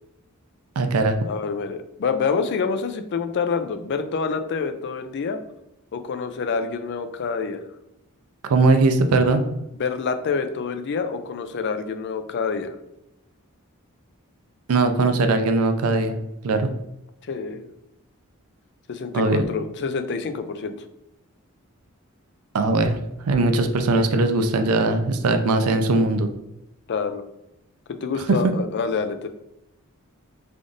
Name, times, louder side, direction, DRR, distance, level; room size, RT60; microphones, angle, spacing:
voice 1, 0.8-1.2 8.5-9.4 14.7-16.7 19.1-19.4 22.5-23.0 23.3-26.3 28.4-28.5, right 3 dB, 90° right, 7 dB, 0.5 m, -20 dB
voice 2, 1.3-5.4 5.9-7.6 9.7-12.8 17.2-17.6 18.9-20.8 26.9-27.2 28.0-29.3, left 5 dB, 55° left, 9 dB, 0.4 m, -27 dB
3.4 x 2.5 x 3.8 m, 0.87 s
head